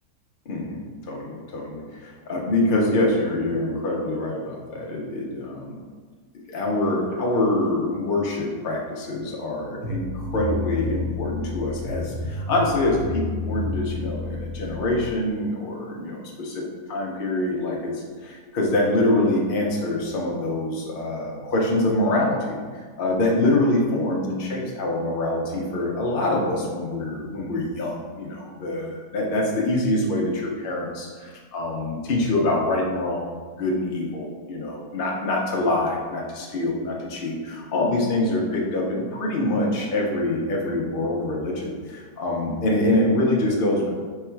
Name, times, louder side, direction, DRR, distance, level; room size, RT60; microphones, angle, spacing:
voice 1, 0.5-0.8 1.1-5.8 6.5-16.3 16.6-16.7 16.9-17.9 18.2-43.9, left 1 dB, 55° left, -2 dB, 0.6 m, -25 dB
sound 1, 9.8-15.1, left 2 dB, 90° right, 2.3 m, -31 dB
4.6 x 2.3 x 4.4 m, 1.5 s
omnidirectional pair, 1.9 m